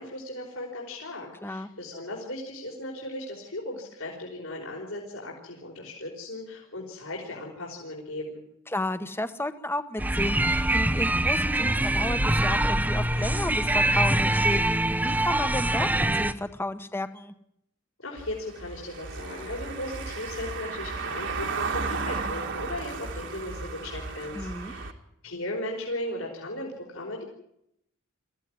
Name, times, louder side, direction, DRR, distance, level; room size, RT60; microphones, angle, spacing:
voice 1, 0.0-8.4 18.0-24.9 25.2-27.3, left 1 dB, 75° left, -2 dB, 5.1 m, -37 dB
voice 2, 8.7-17.3 24.3-24.7, left 1 dB, 10° left, 10 dB, 1.1 m, -32 dB
sound 1, 10.0-16.3, right 1 dB, 10° right, 0.8 m, -24 dB
Car passing by / Engine, 18.2-24.9, right 4 dB, 60° right, 2.1 m, -34 dB
23.0 x 15.5 x 9.8 m, 0.79 s
head